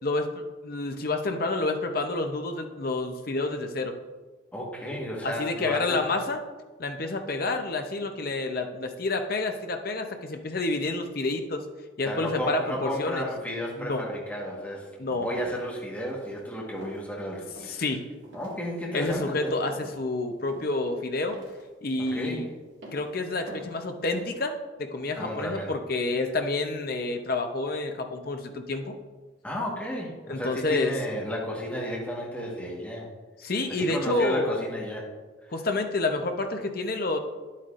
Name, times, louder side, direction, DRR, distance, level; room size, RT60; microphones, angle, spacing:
voice 1, 0.0-4.0 5.2-6.4 6.8-11.6 12.0-13.3 13.8-14.1 15.0-15.3 17.7-18.0 18.9-21.4 21.8-22.5 22.9-29.0 30.3-30.9 33.4-34.6 35.5-37.2, left 2 dB, 45° left, 5 dB, 0.7 m, -29 dB
voice 2, 4.5-6.0 12.0-17.8 18.3-19.5 22.0-22.5 25.2-25.7 29.4-33.1 33.7-35.1, equal, 10° left, -3 dB, 1.4 m, -33 dB
sound 1, 15.3-15.6 16.0-16.4 16.8-17.0 17.5-17.8 18.2-18.6 19.0-19.3 19.7-20.0 20.5-20.8 21.3-21.6 22.1-22.3 22.8-23.1 23.5-23.8 24.1-24.4, right 1 dB, 70° right, 1.9 m, -45 dB
9.8 x 8.4 x 2.5 m, 1.3 s
head